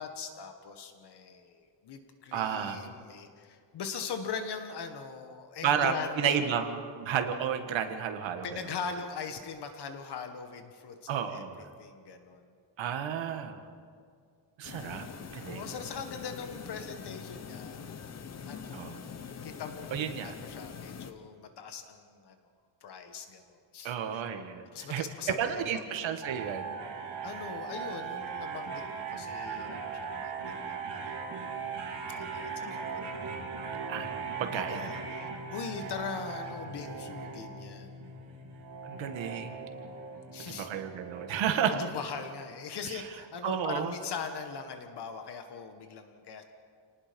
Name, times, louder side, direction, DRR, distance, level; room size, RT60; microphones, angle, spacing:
voice 1, 0.0-6.4 8.4-11.5 11.8-12.5 15.4-17.8 18.4-18.9 19.4-22.3 22.8-24.2 24.7-25.8 27.2-31.2 32.1-32.8 34.4-38.0 40.3-40.7 41.7-46.4, left 6 dB, 60° left, 6 dB, 1.6 m, -41 dB
voice 2, 2.3-2.8 5.6-8.7 11.1-11.6 12.8-13.6 14.6-15.1 15.3-15.6 18.7-19.0 19.9-20.3 23.8-24.6 24.9-25.0 25.4-26.8 32.6-32.7 33.9-34.1 34.4-35.0 38.8-39.6 40.5-41.8 42.8-43.1 43.4-43.9, right 8 dB, 90° right, 6 dB, 1.8 m, -32 dB
sound 1, 14.6-21.1, left 6 dB, 35° left, 1.1 m, -44 dB
sound 2, 26.2-41.9, right 5 dB, 65° right, 3.6 m, -39 dB
28.5 x 19.5 x 5.3 m, 2.2 s
wide cardioid pair, 175°, 44 cm